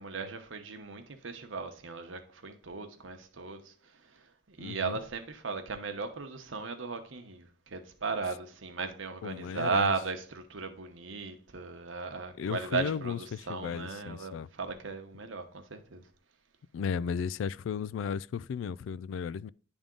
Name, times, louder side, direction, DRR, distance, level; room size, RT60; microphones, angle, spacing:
voice 1, 0.0-16.0, right 4 dB, 75° right, 1.0 m, -36 dB
voice 2, 4.6-5.0 9.2-9.9 12.4-14.5 16.7-19.5, left 6 dB, 75° left, 0.3 m, -35 dB
10.5 x 3.6 x 3.7 m
head